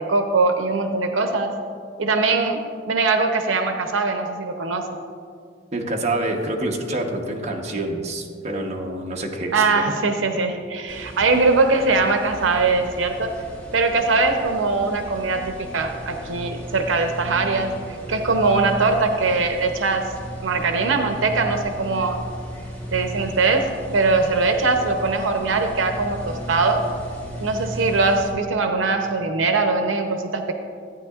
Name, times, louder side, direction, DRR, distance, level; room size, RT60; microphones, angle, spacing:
voice 1, 0.0-1.5 2.0-2.6 2.9-4.8 9.5-13.3 13.7-17.7 18.1-20.1 20.4-22.2 22.9-23.7 23.9-26.8 27.4-30.5, right 3 dB, 85° right, 5 dB, 0.7 m, -21 dB
voice 2, 5.7-9.7, right 1 dB, 35° right, 0 dB, 1.0 m, -27 dB
sound 1, 10.9-28.3, right 1 dB, 10° left, 1.2 m, -35 dB
13.5 x 9.2 x 2.4 m, 2.2 s
head